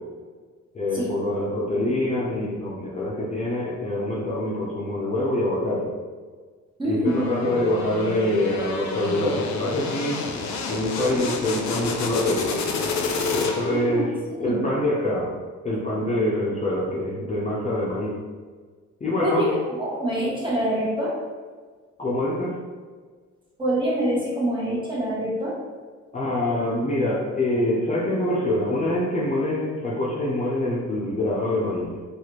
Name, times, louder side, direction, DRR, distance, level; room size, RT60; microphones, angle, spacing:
voice 1, 0.7-5.9 6.8-10.2 10.7-12.5 13.3-14.1 14.4-15.3 15.6-18.1 19.0-19.4 22.0-22.6 26.1-31.9, left 1 dB, 25° left, -6 dB, 0.6 m, -25 dB
voice 2, 6.8-7.3 13.7-14.0 14.3-14.6 19.2-21.1 23.6-25.5, right 1 dB, 15° right, -6 dB, 1.1 m, -25 dB
sound 1, 7.1-13.9, left 4 dB, 65° left, 0.5 m, -29 dB
3.2 x 2.4 x 2.9 m, 1.5 s
cardioid pair, 90°, 30 cm